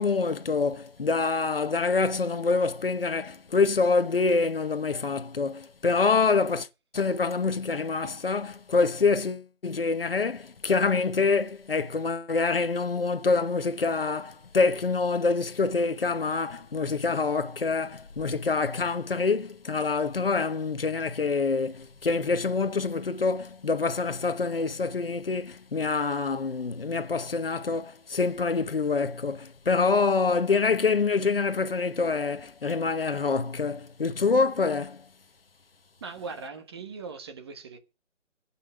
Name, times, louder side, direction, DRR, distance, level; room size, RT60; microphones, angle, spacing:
voice 1, 0.0-6.7 6.9-35.1, left 4 dB, 50° left, 1.3 m, -26 dB
voice 2, 36.0-37.8, right 4 dB, 20° right, 1.5 m, -39 dB
17.0 x 6.1 x 8.6 m
figure-of-eight pair, 155°, 37 cm